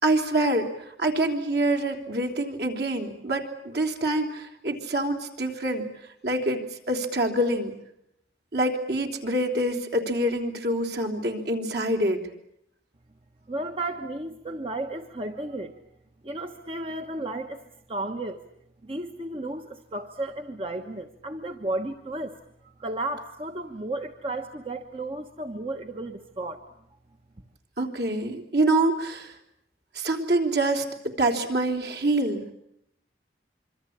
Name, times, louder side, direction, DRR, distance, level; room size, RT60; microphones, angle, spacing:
voice 1, 0.0-5.9 6.2-7.7 8.5-12.2 27.8-29.4 29.9-32.5, right 1 dB, 60° right, 3 dB, 3.6 m, -26 dB
voice 2, 13.5-15.8 16.2-17.6 17.9-18.4 18.8-22.4 22.6-26.6, right 2 dB, 30° right, 6 dB, 1.2 m, -33 dB
26.0 x 24.5 x 8.7 m, 0.77 s
head